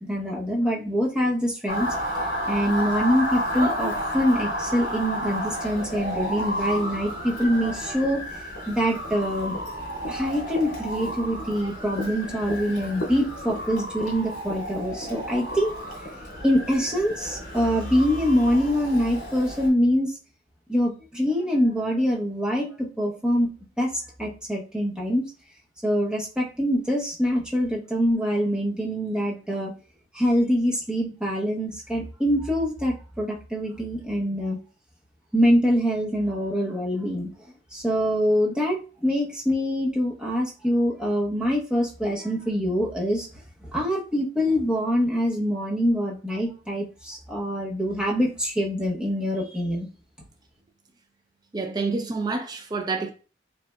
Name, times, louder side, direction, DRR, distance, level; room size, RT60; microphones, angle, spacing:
voice 1, 0.0-1.9 2.5-8.2 8.7-9.5 10.1-15.7 16.0-16.1 16.4-20.2 20.7-23.5 23.8-23.9 24.2-25.2 25.8-29.7 30.1-34.6 35.3-37.3 37.7-43.3 43.7-49.9, equal, 5° right, 0.8 m, -24 dB
Motor vehicle (road) / Siren, 1.7-19.7, equal, 60° left, 1.8 m, -32 dB
voice 2, 51.5-53.1, right 3 dB, 20° right, 0.4 m, -28 dB
5.0 x 2.7 x 2.2 m
head